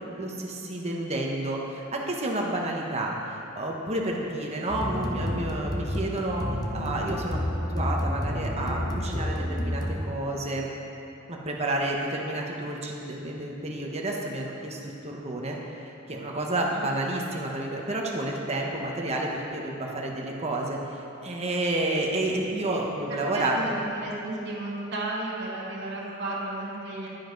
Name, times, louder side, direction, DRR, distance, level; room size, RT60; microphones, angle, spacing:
voice 1, 0.0-10.7 11.3-15.6 15.8-23.7, right 1 dB, 30° right, -1 dB, 1.3 m, -30 dB
sound 1, 4.7-10.4, left 1 dB, 20° left, 0.8 m, -30 dB
voice 2, 23.1-27.1, right 2 dB, 60° right, -6 dB, 2.0 m, -33 dB
11.0 x 10.0 x 4.1 m, 2.9 s
head